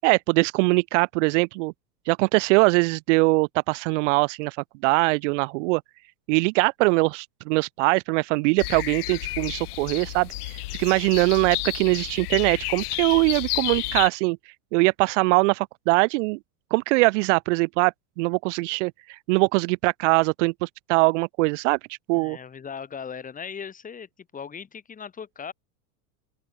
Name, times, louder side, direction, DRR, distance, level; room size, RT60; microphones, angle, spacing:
voice 1, 0.0-1.7 2.1-4.6 4.8-5.8 6.3-14.4 14.7-16.4 16.7-22.4, right 26 dB, 55° right, 0.7 m, -22 dB
sound 1, 8.6-14.1, left 18 dB, 75° left, 5.3 m, -31 dB
voice 2, 22.1-25.5, left 6 dB, 15° left, 6.2 m, -38 dB
open air
supercardioid pair, 155°, 46 cm